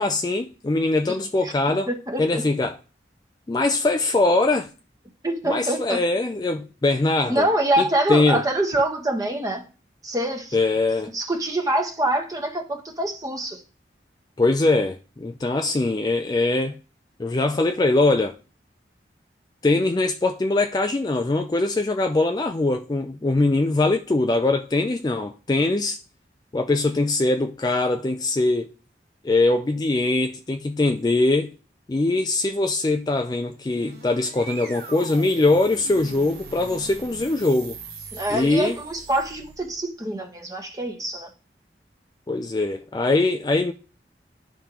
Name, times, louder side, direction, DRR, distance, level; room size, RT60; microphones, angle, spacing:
voice 1, 0.0-1.9 2.2-2.8 3.5-4.7 5.4-7.5 7.8-8.4 10.5-11.1 14.4-16.8 17.2-18.4 19.6-26.0 26.5-28.7 29.2-31.5 31.9-37.8 38.3-38.8 42.3-43.7, left 2 dB, 25° left, 0.3 m, -22 dB
voice 2, 1.9-2.4 5.2-6.0 7.3-9.6 10.0-10.6 11.1-13.6 38.1-41.3, right 1 dB, 20° right, 1.1 m, -25 dB
sound 1, 33.5-39.8, right 3 dB, 65° right, 1.4 m, -41 dB
11.0 x 5.1 x 2.9 m
head